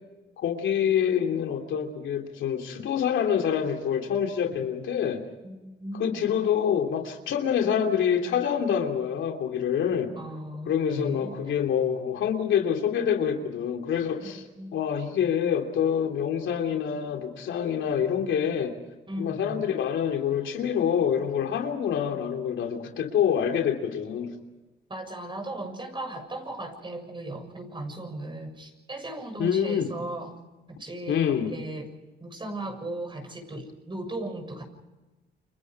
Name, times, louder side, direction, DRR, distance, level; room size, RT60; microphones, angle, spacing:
voice 1, 0.4-5.2 6.0-10.1 10.7-14.4 14.7-18.7 19.2-24.3 29.4-29.9 31.1-31.5, left 8 dB, 75° left, 4 dB, 3.1 m, -26 dB
voice 2, 5.4-6.3 10.2-11.6 14.3-14.8 19.1-19.6 24.9-30.4 30.7-31.9 32.2-34.6, right 1 dB, 25° right, 6 dB, 7.1 m, -37 dB
29.5 x 25.0 x 4.8 m, 1.1 s
cardioid pair, 90°, 20 cm